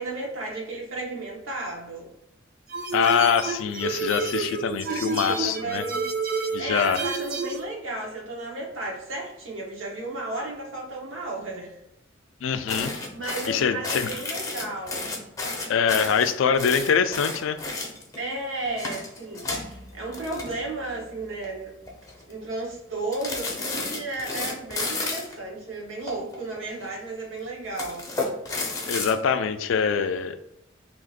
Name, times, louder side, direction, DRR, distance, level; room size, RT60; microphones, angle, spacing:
voice 1, 0.0-2.1 4.8-11.8 13.1-15.1 18.2-21.7 22.3-28.1, right 2 dB, 85° right, -1 dB, 1.0 m, -34 dB
sound 1, 2.7-7.6, right 4 dB, 45° right, 0.5 m, -30 dB
voice 2, 2.9-5.8 6.5-7.0 12.4-12.9 13.5-14.1 15.7-17.6 28.9-30.4, left 6 dB, 80° left, 10 dB, 0.3 m, -24 dB
sound 2, 12.7-18.2 18.6-21.0 21.2-21.5 21.9-22.3 23.1-25.4 26.1-26.9 27.6-29.1, left 3 dB, 15° left, 0.5 m, -32 dB
2.8 x 2.4 x 4.0 m, 0.82 s
head